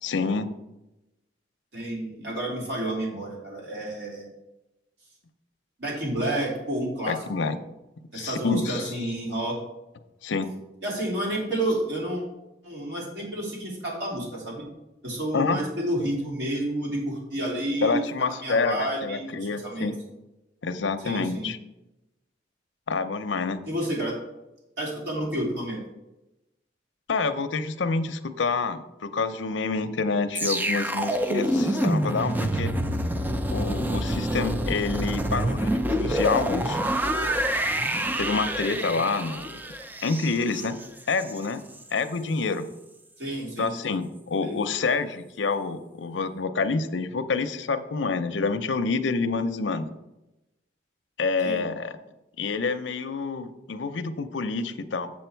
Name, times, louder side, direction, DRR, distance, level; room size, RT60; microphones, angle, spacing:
voice 1, 0.0-0.5 7.1-7.6 8.1-8.9 10.2-10.5 15.3-15.6 17.8-20.0 20.6-21.6 22.9-23.6 27.1-32.7 33.5-36.8 38.2-39.6 40.0-40.8 41.1-41.6 41.9-42.7 43.6-49.9 51.2-52.0 52.4-55.1, left 4 dB, 80° left, 10 dB, 0.6 m, -27 dB
voice 2, 1.7-4.3 5.8-7.6 8.1-9.6 10.8-12.2 12.6-14.7 15.0-19.9 21.0-21.5 23.6-24.2 24.8-25.8 43.2-43.7 44.4-44.6 51.4-51.6, right 1 dB, 70° right, -4 dB, 3.2 m, -30 dB
sound 1, 30.4-41.5 41.8-42.0, right 1 dB, 10° right, 0.4 m, -27 dB
7.3 x 7.1 x 4.5 m, 0.97 s
head